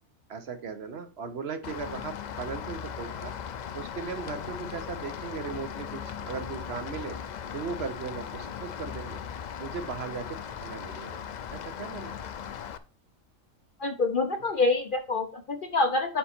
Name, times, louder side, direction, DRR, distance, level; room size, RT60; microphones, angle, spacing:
voice 1, 0.3-3.3 3.7-7.2 7.5-9.2 9.6-11.2 11.5-12.2, right 5 dB, 55° right, 9 dB, 0.9 m, -37 dB
Rain, 1.6-12.8, left 8 dB, 90° left, 0.3 m, -38 dB
voice 2, 13.8-16.2, left 3 dB, 50° left, 7 dB, 0.7 m, -26 dB
7.5 x 5.4 x 4.3 m, 0.35 s
omnidirectional pair, 1.4 m